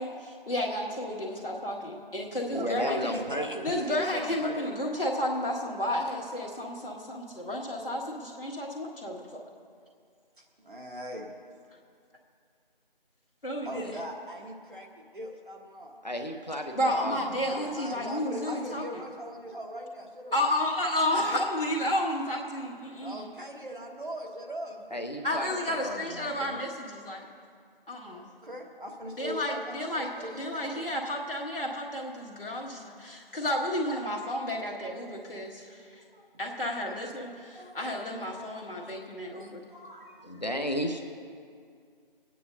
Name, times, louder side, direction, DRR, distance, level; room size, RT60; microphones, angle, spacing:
voice 1, 0.0-3.2 3.6-9.3 13.4-13.9 16.7-19.0 20.3-23.3 25.2-27.3 27.9-28.3 29.2-36.0 36.4-39.6, left 1 dB, 70° left, -2 dB, 1.9 m, -32 dB
voice 2, 2.5-4.8 13.8-14.0 16.0-17.7 24.9-26.6 40.2-41.0, equal, 45° left, 4 dB, 0.8 m, -35 dB
voice 3, 3.1-3.9 10.4-11.3 13.6-16.0 17.7-20.3 23.0-25.0 28.1-30.9 35.8-36.3 36.8-37.0 37.5-38.0 38.7-38.9 39.3-40.4, equal, 60° right, 1 dB, 1.4 m, -41 dB
25.0 x 9.3 x 2.7 m, 2.2 s
figure-of-eight pair, 175°, 29 cm